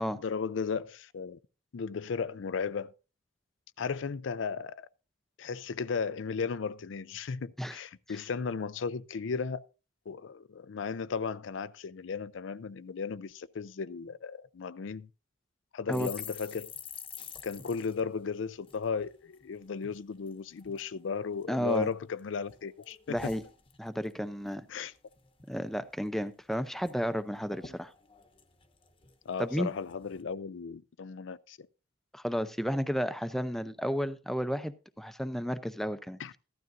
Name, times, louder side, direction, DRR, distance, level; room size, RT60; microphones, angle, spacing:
voice 1, 0.1-1.4 1.7-2.9 3.8-4.9 5.4-9.7 10.1-15.1 15.7-16.7 17.4-23.3 24.7-24.9 29.3-31.7 36.2-36.3, left 5 dB, 70° left, 0.4 m, -35 dB
sound 1, 15.9-19.4 19.8-20.0 20.3-20.9 21.4-22.2 22.5-24.2 24.5-24.7 25.0-25.5 25.9-26.0 26.3-26.9 27.2-27.3 27.5-29.4 29.9-30.2, left 7 dB, 25° left, 1.0 m, -48 dB
voice 2, 21.5-21.9 23.1-23.4 23.8-24.6 25.5-27.9 29.4-29.7 32.1-36.2, equal, ahead, 0.5 m, -32 dB
15.0 x 12.0 x 2.6 m
head